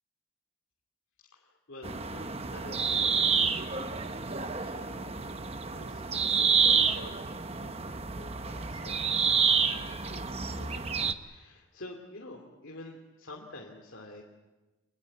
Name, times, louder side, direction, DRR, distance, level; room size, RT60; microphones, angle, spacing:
voice 1, 1.3-3.3 4.0-5.1 5.7-7.2 7.6-9.3 9.6-14.2, left 1 dB, 60° left, -1 dB, 2.7 m, -49 dB
sound 1, 1.8-11.1, right 5 dB, 30° right, 1.0 m, -29 dB
25.5 x 21.0 x 8.5 m, 1.1 s
head